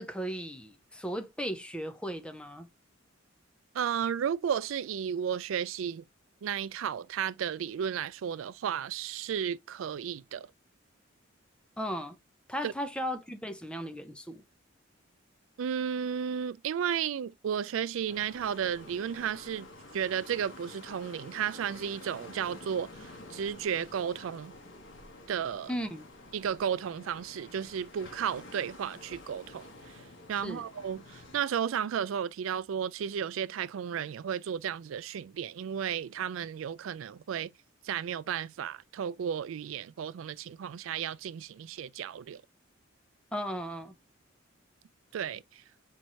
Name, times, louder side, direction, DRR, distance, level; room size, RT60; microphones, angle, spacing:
voice 1, 0.0-2.7 11.8-12.2 12.5-14.4 25.7-26.0 30.4-30.6 43.3-43.9, equal, 5° left, 0.6 m, -36 dB
voice 2, 3.7-6.0 6.4-10.5 12.6-12.7 15.6-19.7 19.9-24.5 25.3-25.7 26.3-30.0 30.3-37.5 37.8-42.4 45.1-45.6, right 8 dB, 80° right, 0.3 m, -33 dB
sound 1, 18.0-31.4, left 2 dB, 70° left, 1.7 m, -49 dB
4.6 x 4.4 x 2.5 m
head